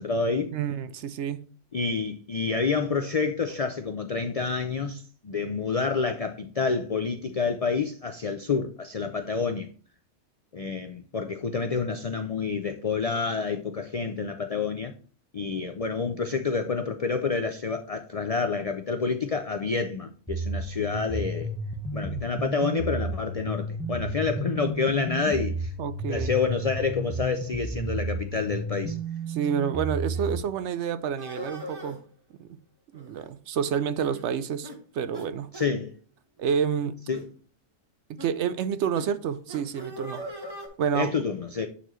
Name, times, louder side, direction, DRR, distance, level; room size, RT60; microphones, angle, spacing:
voice 1, 0.0-0.5 1.7-9.7 10.5-14.9 15.3-21.5 21.9-25.7 26.1-29.0 35.5-35.9 37.1-37.2 40.9-41.7, left 5 dB, 70° left, 0.3 m, -28 dB
voice 2, 0.5-1.4 25.8-26.3 29.3-32.0 32.4-32.5 32.9-34.7 34.9-35.5 36.4-37.0 38.1-40.2 40.8-41.1, right 7 dB, 70° right, 0.8 m, -28 dB
sound 1, 20.3-30.4, right 2 dB, ahead, 0.7 m, -32 dB
sound 2, 30.1-30.3 31.1-32.0 32.9-33.3 33.6-33.7 34.1-34.3 34.6-34.8 35.1-35.3 35.5-35.7 36.4-36.6 37.1-37.3 38.2-38.3 38.9-39.1 39.5-40.7, equal, 20° right, 1.3 m, -40 dB
9.1 x 4.2 x 3.1 m
omnidirectional pair, 1.3 m